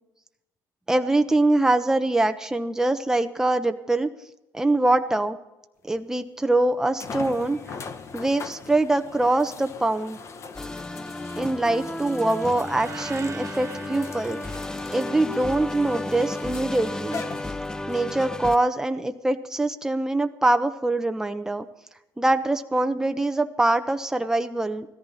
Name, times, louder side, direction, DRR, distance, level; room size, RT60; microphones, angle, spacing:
voice 1, 0.9-4.1 4.5-5.4 5.9-7.6 8.1-10.2 11.4-14.4 14.9-17.2 17.9-21.7 22.2-24.9, right 2 dB, 5° right, 7 dB, 1.0 m, -23 dB
sound 1, 5.9-6.0 7.0-18.0 18.8-18.9 22.3-22.4, left 5 dB, 40° left, 1.1 m, -41 dB
sound 2, 10.5-18.6, left 2 dB, 10° left, 0.5 m, -33 dB
sound 3, 12.5-15.7, right 6 dB, 40° right, 1.3 m, -43 dB
17.0 x 14.0 x 4.2 m, 0.94 s
cardioid pair, 110°, 7 cm